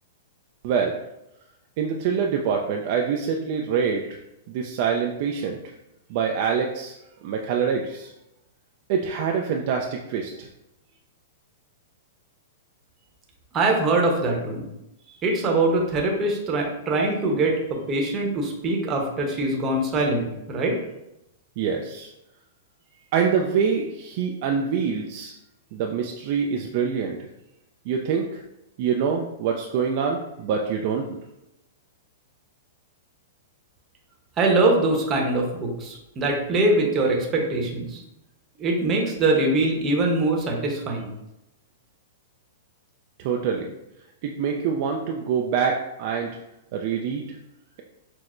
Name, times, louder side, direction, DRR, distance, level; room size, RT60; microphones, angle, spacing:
voice 1, 0.6-0.9 1.8-4.1 4.5-5.7 6.1-6.9 7.2-8.1 8.9-10.5 21.6-22.1 23.1-25.3 25.7-27.2 27.9-28.4 28.8-31.0 43.2-43.7 44.2-46.4 46.7-47.4, right 6 dB, 50° right, 1 dB, 0.3 m, -25 dB
voice 2, 13.5-14.7 15.2-20.8 34.4-38.0 38.6-41.1, right 2 dB, 25° right, 0 dB, 0.8 m, -23 dB
5.9 x 2.0 x 2.5 m, 0.88 s
hypercardioid pair, 130°, 0 cm